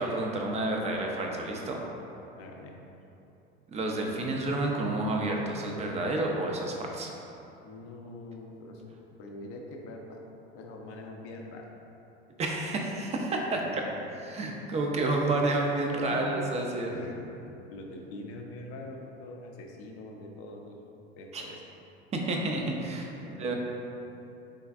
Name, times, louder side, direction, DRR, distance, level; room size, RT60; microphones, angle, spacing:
voice 1, 0.0-1.8 3.7-7.1 12.4-13.8 14.3-16.9 21.3-21.5 22.1-23.1 23.4-23.5, right 2 dB, 20° right, 0 dB, 0.4 m, -30 dB
voice 2, 2.4-2.7 7.6-8.8 9.2-10.3 10.5-11.7 13.5-14.0 16.1-16.4 16.9-17.3 17.7-20.8 21.2-21.6 23.2-23.5, left 2 dB, 45° left, 1 dB, 0.5 m, -43 dB
3.5 x 3.2 x 2.3 m, 2.9 s
hypercardioid pair, 90°, 33 cm